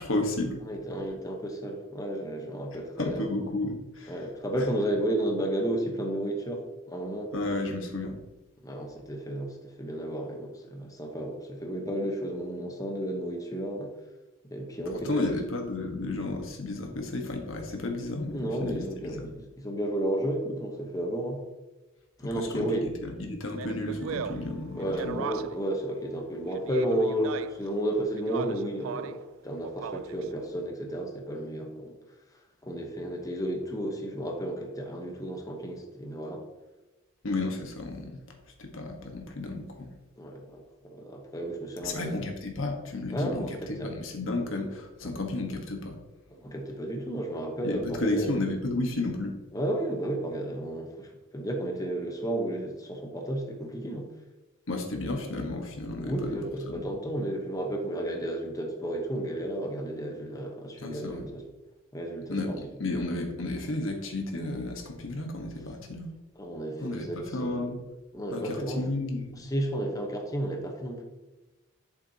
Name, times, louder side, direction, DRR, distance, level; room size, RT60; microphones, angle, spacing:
voice 1, 0.0-0.6 3.0-4.2 7.3-8.2 14.9-19.3 22.3-25.2 37.2-38.2 38.6-39.9 41.8-46.0 47.6-49.4 54.7-56.4 56.7-56.9 60.8-61.3 62.3-66.1 66.8-67.8 68.3-69.4, left 2 dB, 85° left, 3 dB, 1.3 m, -32 dB
voice 2, 0.6-3.3 4.1-7.3 8.6-13.9 14.4-15.4 18.3-21.5 22.2-22.9 24.8-32.0 32.6-36.4 40.2-42.2 43.1-44.0 45.0-45.1 46.3-48.3 49.5-54.1 56.0-61.5 61.9-62.6 66.4-67.6 68.1-68.9 69.4-71.0, right 1 dB, 20° left, 1 dB, 1.0 m, -32 dB
Speech, 23.5-25.7 26.5-27.7 28.1-29.3 29.6-30.3, right 7 dB, 90° right, 0.3 m, -38 dB
sound 1, 23.6-27.4, right 5 dB, ahead, 1.4 m, -51 dB
8.3 x 7.0 x 2.8 m, 1.1 s
head